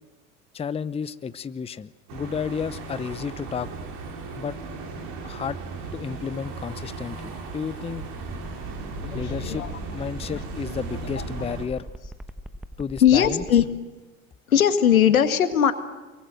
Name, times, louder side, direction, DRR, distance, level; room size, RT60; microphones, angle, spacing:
voice 1, 0.5-3.7 4.4-4.5 5.2-5.6 5.9-8.1 9.1-9.7 9.9-11.8 12.8-13.4, left 6 dB, 15° left, 15 dB, 0.7 m, -32 dB
sound 1, 2.1-11.7, right 4 dB, 55° right, 5.7 m, -36 dB
sound 2, 8.3-13.6, equal, ahead, 1.2 m, -40 dB
voice 2, 9.0-9.7 10.3-10.4 11.2-11.3 13.0-13.6 14.5-15.7, left 9 dB, 85° left, 10 dB, 2.0 m, -19 dB
23.5 x 23.5 x 7.7 m, 1.2 s
hypercardioid pair, 85°, 41 cm